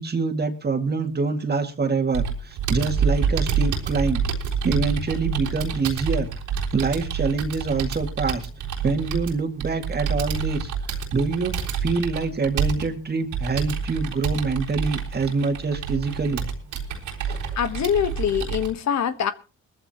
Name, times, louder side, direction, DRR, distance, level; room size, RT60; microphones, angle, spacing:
voice 1, 0.0-4.2 4.6-6.3 6.7-8.5 8.8-16.5 17.3-17.5, right 4 dB, 35° right, 2.2 m, -25 dB
Computer keyboard, 2.1-18.7, right 6 dB, 85° right, 3.8 m, -28 dB
voice 2, 17.6-19.3, left 8 dB, 65° left, 1.3 m, -24 dB
20.0 x 14.5 x 3.0 m
cardioid pair, 90°, 30 cm